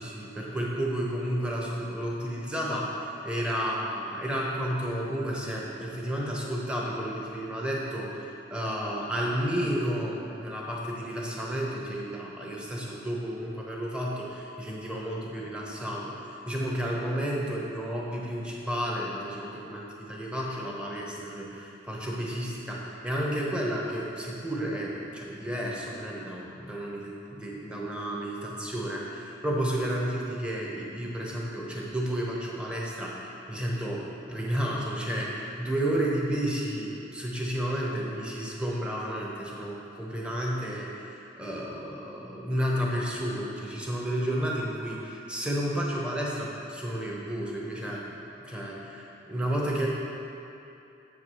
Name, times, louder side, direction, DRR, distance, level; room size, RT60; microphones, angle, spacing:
voice 1, 0.0-48.1 48.4-49.9, equal, 5° right, -4 dB, 1.0 m, -32 dB
7.8 x 4.9 x 6.2 m, 2.8 s
head